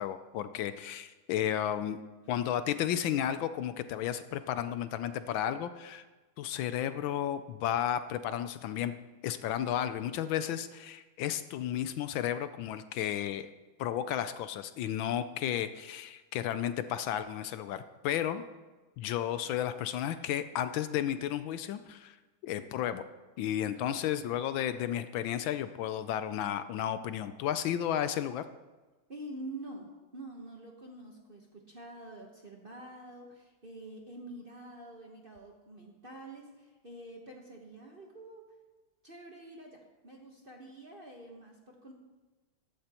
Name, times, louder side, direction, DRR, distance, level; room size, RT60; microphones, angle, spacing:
voice 1, 0.0-2.0 2.3-6.0 6.4-8.9 9.2-13.5 13.8-18.4 19.0-22.2 22.4-23.0 23.4-28.4, left 10 dB, 75° left, 11 dB, 1.3 m, -33 dB
voice 2, 29.1-38.4 39.0-41.9, right 1 dB, 35° right, 0 dB, 1.0 m, -47 dB
14.5 x 12.0 x 2.9 m, 1.2 s
omnidirectional pair, 2.3 m